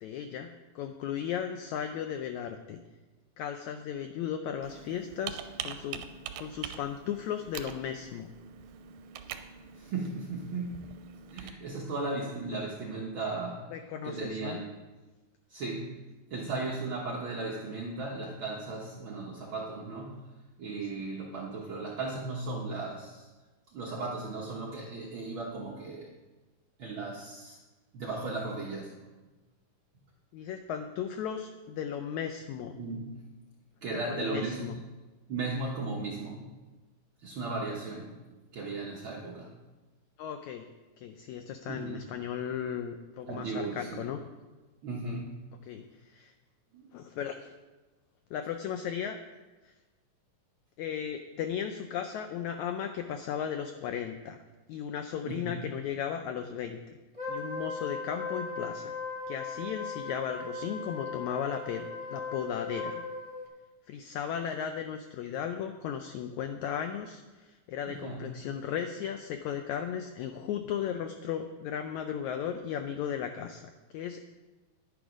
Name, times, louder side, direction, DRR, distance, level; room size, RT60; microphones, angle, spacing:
voice 1, 0.0-2.8 3.4-6.0 6.4-8.3 13.7-14.6 30.3-32.8 33.9-34.8 40.2-40.7 41.0-44.2 45.6-46.3 46.9-47.5 48.3-49.2 49.6-49.7 50.8-54.4 54.7-57.0 57.3-58.9 59.3-63.0 63.9-74.3, left 8 dB, 90° left, 7 dB, 1.6 m, -36 dB
Computer keyboard, 4.6-11.5, right 8 dB, 85° right, 2.4 m, -43 dB
voice 2, 9.8-10.7 11.3-13.6 14.0-14.7 15.5-15.9 16.3-20.1 20.6-23.3 23.7-26.1 26.8-27.6 27.9-28.9 32.8-33.1 33.8-34.7 35.3-36.4 37.2-38.1 38.5-39.5 41.7-41.9 43.3-44.0 44.8-45.4 46.7-46.9 55.2-55.6 67.8-68.3, right 3 dB, 65° right, -2 dB, 1.2 m, -36 dB
Wind instrument woodwind instrument, 57.1-63.5, left 3 dB, 10° left, 1.9 m, -38 dB
10.5 x 10.0 x 5.1 m, 1.2 s
omnidirectional pair, 4.0 m